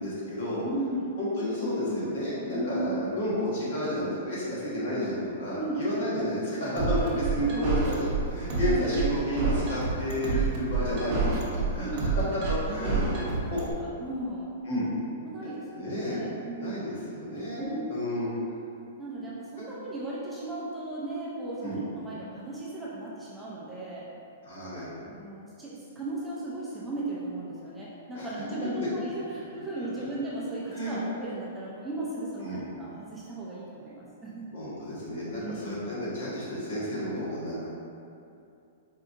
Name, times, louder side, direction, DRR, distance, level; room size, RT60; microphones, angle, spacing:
voice 1, 0.0-0.6 1.2-11.2 11.5-11.9 12.2-13.2 13.5-13.6 14.6-14.9 15.4-15.5 15.8-16.2 16.6-18.3 19.6-19.7 21.6-21.8 24.4-24.9 28.1-28.3 28.7-28.9 29.8-30.1 30.7-31.0 32.4-32.6 34.5-37.7, equal, 60° left, -9 dB, 1.5 m, -31 dB
voice 2, 0.6-1.1 2.5-3.0 5.5-5.8 6.7-7.7 8.5-9.0 10.9-11.2 11.8-12.1 12.8-14.5 15.2-16.9 17.6-17.8 19.0-24.1 25.0-34.5 35.3-35.8, right 1 dB, 5° right, -8 dB, 0.4 m, -36 dB
sound 1, 6.8-13.7, right 4 dB, 40° right, 0.8 m, -28 dB
4.6 x 2.7 x 2.5 m, 2.6 s
hypercardioid pair, 160°, 0 cm